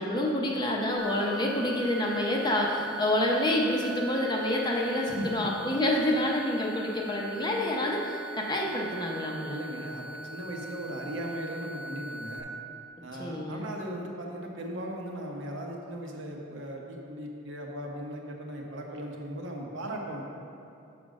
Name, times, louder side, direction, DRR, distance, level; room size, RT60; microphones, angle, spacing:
voice 1, 0.0-9.6 13.2-13.7, left 1 dB, 20° left, -2 dB, 0.6 m, -28 dB
sound 1, 1.0-12.4, right 3 dB, 60° left, 0.9 m, -42 dB
voice 2, 5.0-5.5 9.5-12.5 13.0-20.2, right 1 dB, 60° right, 0 dB, 0.9 m, -38 dB
6.0 x 5.0 x 6.3 m, 2.7 s
head